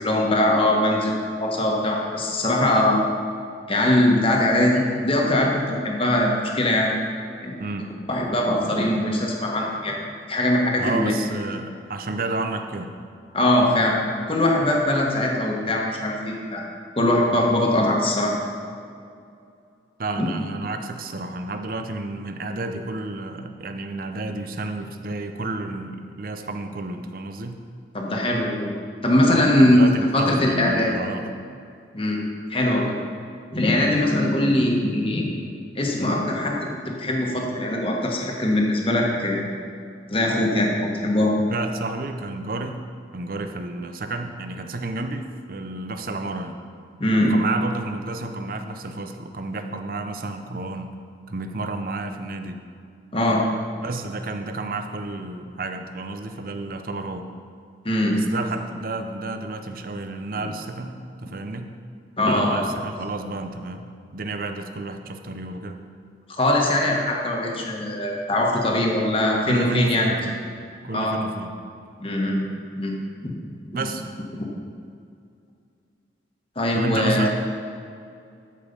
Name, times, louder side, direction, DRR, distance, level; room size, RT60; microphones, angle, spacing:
voice 1, 0.0-3.1 3.7-6.9 7.4-7.6 8.1-10.0 10.3-11.1 13.3-14.0 14.3-16.6 17.0-18.3 20.2-20.3 27.9-28.7 29.0-29.8 30.1-30.9 31.9-32.2 32.5-32.9 33.5-35.4 35.7-39.5 40.1-41.3 47.0-47.3 53.1-53.4 57.8-58.2 62.2-62.7 66.4-70.2 70.9-71.2 72.0-72.4 72.8-72.9 73.2-73.3 74.3-74.4 76.6-77.3, left 1 dB, 30° left, -1 dB, 1.3 m, -21 dB
voice 2, 7.6-7.9 10.8-12.9 20.0-27.6 29.3-31.3 41.5-42.8 43.1-46.6 47.2-50.9 51.3-52.6 53.8-57.3 58.1-61.7 62.2-63.9 64.1-65.8 69.5-70.4 70.8-71.5 73.7-74.0 76.7-77.3, right 2 dB, 50° right, 6 dB, 0.7 m, -31 dB
13.0 x 5.2 x 5.5 m, 2.4 s
head